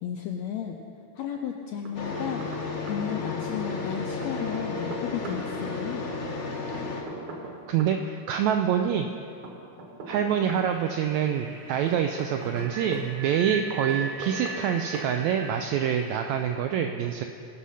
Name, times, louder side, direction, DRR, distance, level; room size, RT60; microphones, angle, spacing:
voice 1, 0.0-0.8 1.2-2.5 2.9-6.0, left 8 dB, 85° left, 2 dB, 1.5 m, -33 dB
sound 1, 1.9-7.0, left 4 dB, 60° left, 0.8 m, -33 dB
Knock, 1.9-2.6 2.9-3.0 4.2-5.4 6.7-8.0 9.4-10.7 11.9-13.1 13.9-14.7 14.9-15.1, right 3 dB, 65° right, 2.4 m, -39 dB
voice 2, 7.7-9.1 10.1-17.2, right 8 dB, 85° right, 6 dB, 1.6 m, -26 dB
sound 2, 10.4-16.4, right 4 dB, 45° right, 1.1 m, -39 dB
18.5 x 6.2 x 5.6 m, 2.6 s
omnidirectional pair, 3.7 m